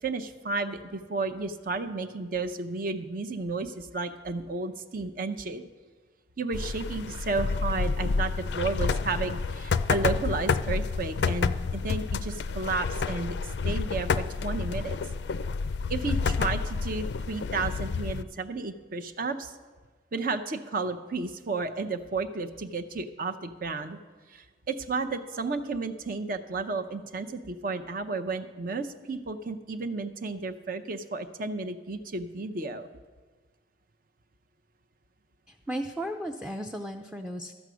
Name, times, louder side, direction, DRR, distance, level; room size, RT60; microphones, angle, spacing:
voice 1, 0.0-5.6 6.4-13.4 13.6-15.0 15.9-19.6 20.1-24.0 24.3-32.9, right 3 dB, 50° right, 8 dB, 0.6 m, -32 dB
sound 1, 6.5-18.2, left 4 dB, 70° left, 0.4 m, -29 dB
voice 2, 35.7-37.5, equal, 5° right, 4 dB, 0.4 m, -34 dB
12.5 x 8.1 x 6.2 m, 1.4 s
head